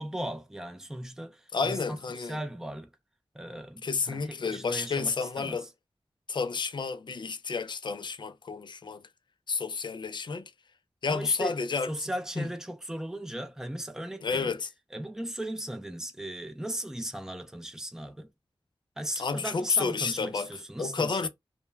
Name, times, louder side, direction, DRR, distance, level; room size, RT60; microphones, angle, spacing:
voice 1, 0.0-1.8 2.1-2.9 3.3-5.7 11.1-11.6 11.9-14.5 14.9-18.3 19.0-21.3, right 1 dB, 5° right, 0.5 m, -37 dB
voice 2, 1.5-2.4 3.8-5.7 6.3-9.1 9.5-10.5 11.0-11.9 12.4-12.5 14.2-14.7 19.2-20.5 20.8-21.3, left 5 dB, 55° left, 0.4 m, -30 dB
2.2 x 2.1 x 3.1 m
wide cardioid pair, 90°, 9 cm